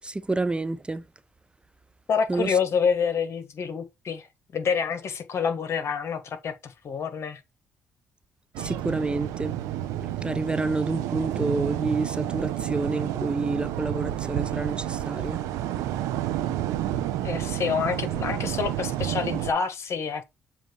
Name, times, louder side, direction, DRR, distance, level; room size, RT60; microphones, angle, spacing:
voice 1, 0.0-1.0 2.3-2.5 8.6-9.5 10.2-15.4, right 3 dB, 20° right, 0.5 m, -28 dB
voice 2, 2.1-4.3 4.5-7.4 17.2-20.3, left 6 dB, 55° left, 1.5 m, -27 dB
sound 1, 8.5-19.5, right 12 dB, 85° right, 0.8 m, -30 dB
7.3 x 2.7 x 4.9 m
supercardioid pair, 65°, 5 cm